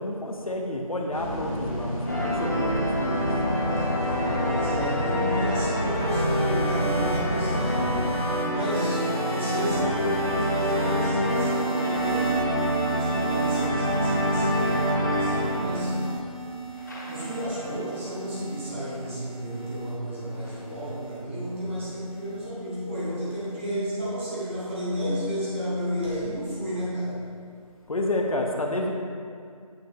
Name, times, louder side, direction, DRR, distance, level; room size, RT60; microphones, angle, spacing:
voice 1, 0.0-3.4 27.9-28.9, left 1 dB, 65° left, 2 dB, 1.0 m, -29 dB
sound 1, 1.1-8.1, equal, 5° left, 1.2 m, -31 dB
sound 2, 2.1-16.4 16.8-18.0 18.6-18.7 19.0-19.1 19.9-20.9, equal, 30° left, 0.8 m, -27 dB
voice 2, 4.4-8.1 8.5-16.1 17.1-27.3, equal, 20° right, -10 dB, 1.9 m, -32 dB
sound 3, 6.0-22.5 23.4-23.7, right 3 dB, 45° right, 1.8 m, -34 dB
8.8 x 6.8 x 3.1 m, 2.3 s
figure-of-eight pair, 170°, 19 cm